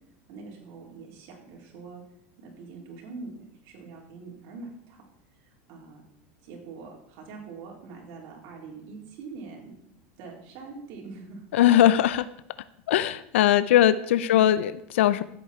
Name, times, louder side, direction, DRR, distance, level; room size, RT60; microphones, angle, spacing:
voice 1, 0.3-2.0 2.4-5.1 5.4-6.0 6.4-9.7 10.2-11.4 14.1-14.5, right 4 dB, 55° right, 0 dB, 3.8 m, -43 dB
voice 2, 11.5-12.3 12.9-15.2, left 12 dB, 90° left, 15 dB, 0.6 m, -20 dB
15.0 x 8.4 x 4.5 m, 0.77 s
supercardioid pair, 145°, 6 cm